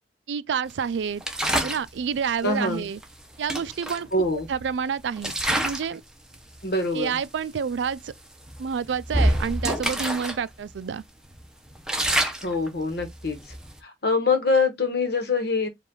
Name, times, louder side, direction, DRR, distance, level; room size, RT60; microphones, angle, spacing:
voice 1, 0.3-1.2 1.6-3.0 3.4-5.3 5.6-6.0 6.9-8.1 8.6-11.0, right 6 dB, 80° right, 0.4 m, -28 dB
sound 1, 1.2-1.9 3.0-3.1 3.5-4.7 5.2-5.9 6.3-6.6 7.2-7.3 7.7-7.9 8.5-10.4 10.7-10.8 11.3-13.8, right 1 dB, 5° right, 0.7 m, -27 dB
voice 2, 2.4-2.9 4.1-4.5 6.6-7.2 12.4-13.4 13.8-15.7, left 3 dB, 60° left, 1.2 m, -24 dB
4.9 x 2.4 x 3.7 m
head